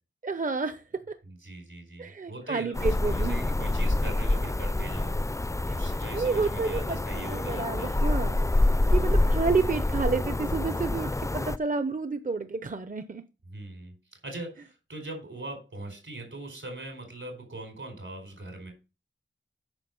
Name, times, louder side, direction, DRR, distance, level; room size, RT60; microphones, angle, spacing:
voice 1, 0.2-1.2 2.0-3.4 5.7-8.4 8.9-13.2, right 4 dB, 40° right, 11 dB, 0.7 m, -30 dB
voice 2, 1.2-5.1 5.7-7.9 8.9-9.1 13.5-13.9 14.2-18.7, right 2 dB, 80° right, 4 dB, 4.7 m, -41 dB
sound 1, 2.7-11.6, left 2 dB, 15° left, 0.4 m, -27 dB
9.1 x 6.1 x 5.3 m, 0.31 s
wide cardioid pair, 70°, 20 cm